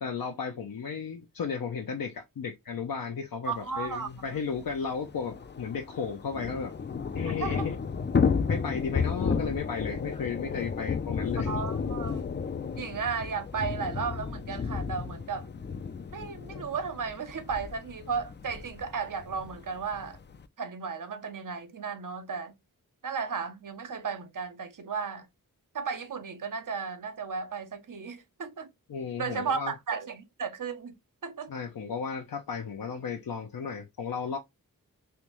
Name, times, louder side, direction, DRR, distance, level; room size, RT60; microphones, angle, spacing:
voice 1, 0.0-6.7 7.1-7.8 8.5-11.5 28.9-29.7 31.5-34.4, left 6 dB, 75° left, 0.6 m, -34 dB
voice 2, 3.5-4.4 7.4-7.7 11.4-12.3 12.8-15.5 16.1-20.2 20.6-22.5 23.0-25.3 25.7-28.7 29.2-31.0 31.2-31.5, right 5 dB, 60° right, 0.7 m, -34 dB
Thunder / Rain, 3.9-4.0 4.2-4.3 4.6-20.5, left 5 dB, 30° left, 0.4 m, -33 dB
3.4 x 2.5 x 3.0 m
cardioid pair, 40°, 35 cm